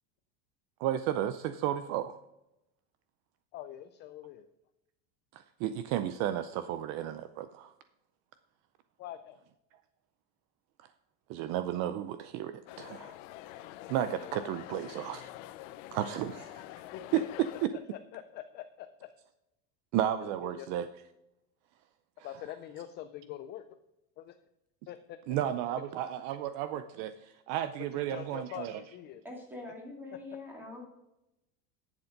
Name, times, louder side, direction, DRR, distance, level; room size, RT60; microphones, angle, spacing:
voice 1, 0.8-2.2 5.3-7.7 11.3-13.2 13.9-15.3 15.9-16.6 17.1-17.7 19.9-20.9 25.3-28.8, right 11 dB, 45° right, 12 dB, 0.5 m, -33 dB
voice 2, 3.5-4.5 9.0-9.4 14.0-14.2 16.9-17.4 17.9-19.1 20.2-20.7 22.2-23.7 24.2-24.3 24.9-25.2 28.1-29.2, left 12 dB, 30° left, 10 dB, 0.4 m, -44 dB
sound 1, 12.7-17.7, left 15 dB, 75° left, 0.8 m, -46 dB
voice 3, 29.2-30.8, left 2 dB, 5° right, -1 dB, 2.7 m, -44 dB
11.5 x 7.2 x 5.2 m, 0.89 s
cardioid pair, 160°, 39 cm